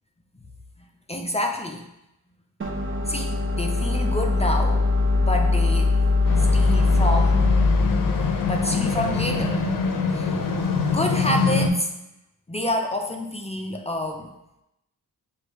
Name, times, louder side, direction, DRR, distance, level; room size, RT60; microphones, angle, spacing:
voice 1, 1.1-1.9 3.1-4.9 5.2-5.9 6.4-7.5 8.5-9.6 10.1-10.4 10.9-11.9 12.5-14.3, left 1 dB, 15° left, 2 dB, 0.5 m, -28 dB
sound 1, 2.6-9.7, left 3 dB, 35° right, 0.8 m, -22 dB
sound 2, 6.3-11.7, left 4 dB, 60° left, 0.7 m, -24 dB
6.3 x 2.6 x 3.1 m, 0.88 s
cardioid pair, 55°, 39 cm